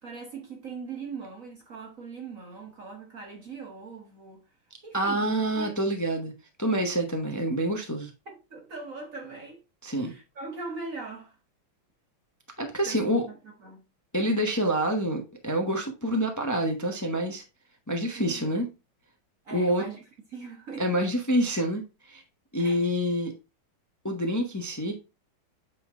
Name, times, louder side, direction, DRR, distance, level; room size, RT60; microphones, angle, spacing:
voice 1, 0.0-4.4 4.8-5.3 5.5-5.7 8.5-9.6 9.9-11.3 12.8-13.4 13.6-13.8 18.1-18.6 19.4-20.0 20.3-20.8 22.6-22.8, right 4 dB, 45° right, 1.7 m, -40 dB
voice 2, 4.9-6.3 6.6-8.1 9.8-10.1 12.6-13.3 14.1-17.4 17.9-18.7 19.5-19.8 20.8-22.2 22.5-23.3 24.0-24.9, equal, 15° left, 0.6 m, -27 dB
8.1 x 3.8 x 3.7 m
omnidirectional pair, 2.3 m